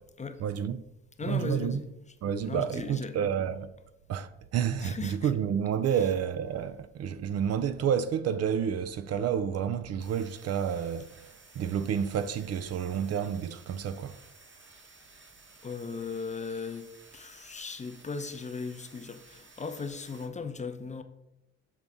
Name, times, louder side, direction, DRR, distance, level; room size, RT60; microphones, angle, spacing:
voice 1, 0.4-0.8 1.3-1.8 2.2-3.7 4.1-11.1 11.6-14.2, right 8 dB, 55° right, 0.4 m, -30 dB
voice 2, 1.2-2.1 2.4-3.2 4.8-5.3 5.9-6.1 15.6-16.9 17.1-21.0, left 4 dB, 25° left, 0.5 m, -37 dB
sound 1, 10.0-20.3, right 3 dB, 40° right, 1.4 m, -55 dB
7.0 x 3.9 x 3.5 m
cardioid pair, 90°, 30 cm